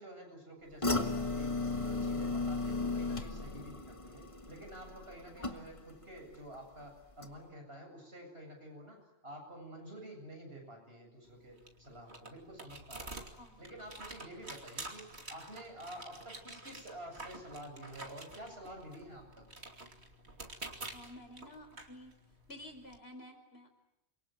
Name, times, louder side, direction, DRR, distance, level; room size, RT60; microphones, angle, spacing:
voice 1, 0.0-13.3 13.6-19.5, right 1 dB, 70° right, 2 dB, 8.1 m, -49 dB
sound 1, 0.8-6.0 6.3-6.8 7.2-7.3, left 3 dB, 30° left, 1.6 m, -35 dB
voice 2, 5.4-5.7 13.4-13.7 20.9-22.1 22.5-23.7, left 1 dB, 70° left, 6 dB, 5.1 m, -51 dB
sound 2, 11.2-23.0, right 2 dB, 90° right, 3.1 m, -49 dB
27.5 x 23.5 x 9.2 m, 0.85 s
omnidirectional pair, 1.1 m